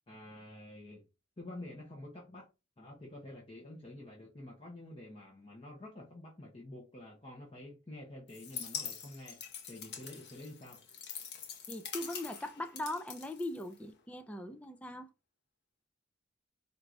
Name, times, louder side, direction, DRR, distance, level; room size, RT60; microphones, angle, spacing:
voice 1, 0.1-1.1 1.4-2.5 2.8-10.8, left 1 dB, 30° left, 0.9 m, -49 dB
sound 1, 8.3-14.0, left 7 dB, 60° left, 0.8 m, -44 dB
voice 2, 11.7-15.1, left 1 dB, 5° left, 0.3 m, -40 dB
4.3 x 2.5 x 3.2 m
head